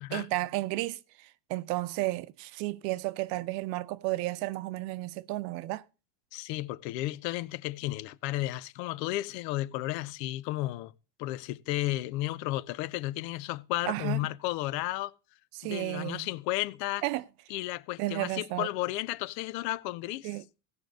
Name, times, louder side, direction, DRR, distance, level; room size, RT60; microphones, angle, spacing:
voice 1, 0.1-5.8 13.9-14.2 15.5-16.3 17.0-17.2 18.0-18.7 20.2-20.4, right 18 dB, 80° right, 0.8 m, -33 dB
voice 2, 6.3-10.9 11.2-15.1 15.6-17.0 17.5-20.3, left 17 dB, 90° left, 0.8 m, -33 dB
15.5 x 5.3 x 6.4 m
supercardioid pair, 110°, 48 cm